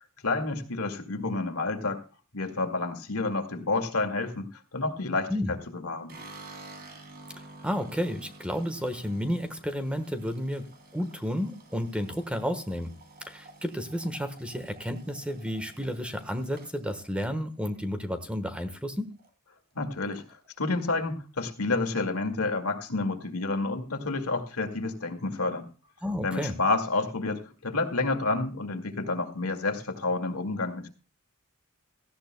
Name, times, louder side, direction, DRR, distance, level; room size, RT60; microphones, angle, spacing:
voice 1, 0.2-2.0 2.3-6.1 19.8-20.2 20.6-25.7 26.2-30.9, left 3 dB, 70° left, 7 dB, 2.1 m, -29 dB
sound 1, 6.1-18.3 18.7-19.3 19.6-19.7 19.9-20.7, right 2 dB, 45° right, 2.8 m, -50 dB
voice 2, 7.6-12.9 13.3-19.1 26.0-26.5, equal, 5° right, 9 dB, 1.2 m, -32 dB
17.5 x 15.0 x 2.2 m, 0.35 s
head